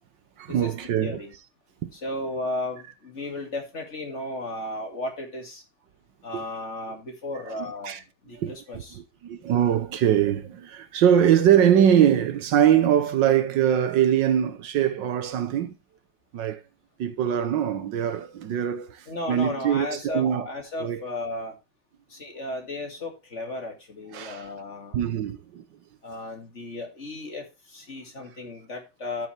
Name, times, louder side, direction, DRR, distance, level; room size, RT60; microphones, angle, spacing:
voice 1, 0.4-1.2 1.8-1.9 6.3-6.4 7.8-8.0 8.4-15.7 16.3-16.6 17.0-20.5 20.8-21.0 24.1-24.5 24.9-25.6, right 9 dB, 75° right, 1.5 m, -22 dB
voice 2, 1.0-1.3 1.9-5.6 6.2-8.0 8.2-9.0 19.1-21.5 22.1-25.0 26.0-29.3, left 2 dB, 35° left, 2.5 m, -34 dB
13.0 x 6.9 x 3.3 m
omnidirectional pair, 2.0 m